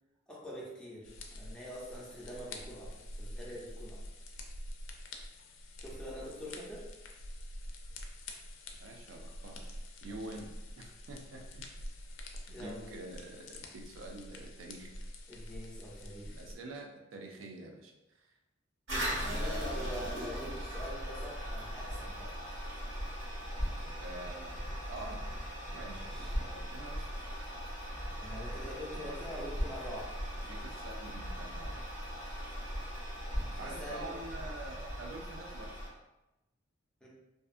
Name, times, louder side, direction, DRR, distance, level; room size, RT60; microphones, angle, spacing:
voice 1, 0.3-4.0 5.8-6.9 10.0-10.2 12.5-12.9 15.3-16.4 19.0-22.3 25.8-26.3 28.1-30.1 33.4-34.2 37.0-37.1, equal, 5° left, -6 dB, 0.6 m, -44 dB
sound 1, 1.0-16.5, left 1 dB, 70° left, 0.4 m, -46 dB
voice 2, 8.8-9.7 10.0-11.9 12.5-15.0 16.3-18.4 19.2-20.1 24.0-24.6 24.9-25.2 25.7-27.1 30.3-31.8 33.6-35.7, right 2 dB, 80° right, 2 dB, 0.4 m, -46 dB
Toilet flush, 18.9-35.9, equal, 65° right, 1.5 m, -39 dB
2.6 x 2.3 x 2.4 m, 0.98 s
head